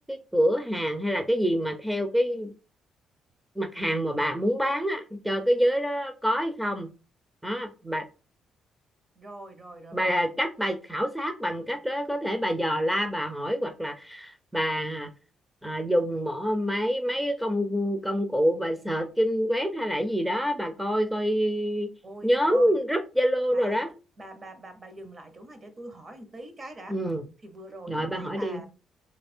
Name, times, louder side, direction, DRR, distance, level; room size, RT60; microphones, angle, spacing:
voice 1, 0.1-2.5 3.6-6.9 7.4-8.0 9.9-15.1 15.6-21.9 22.2-23.9 26.9-27.2 27.9-28.6, equal, ahead, 0.6 m, -26 dB
voice 2, 9.2-10.1 22.0-22.8 23.5-23.8 24.2-27.0 27.4-28.7, right 2 dB, 35° right, 1.0 m, -43 dB
3.3 x 3.1 x 4.3 m
cardioid pair, 90°, 0 cm